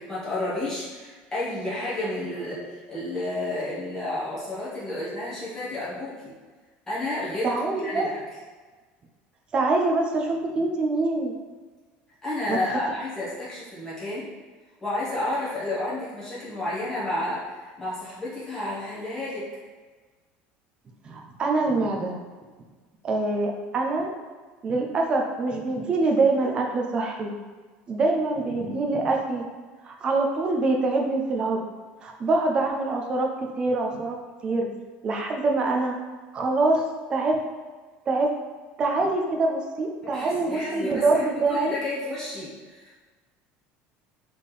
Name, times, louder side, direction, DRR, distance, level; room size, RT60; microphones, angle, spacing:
voice 1, 0.0-6.3 6.9-7.5 7.8-8.2 12.2-14.3 14.8-19.4 40.1-43.0, left 1 dB, 10° left, -10 dB, 1.4 m, -31 dB
voice 2, 7.4-8.1 9.5-11.3 12.5-12.8 21.0-22.2 23.0-24.1 24.6-27.3 27.9-29.4 29.8-31.6 32.0-33.3 33.6-34.2 34.4-34.7 35.0-36.0 36.3-36.8 37.1-37.4 38.1-38.3 38.8-41.7, right 3 dB, 25° right, 1 dB, 0.5 m, -24 dB
4.2 x 3.5 x 3.3 m, 1.4 s
cardioid pair, 180°, 4 cm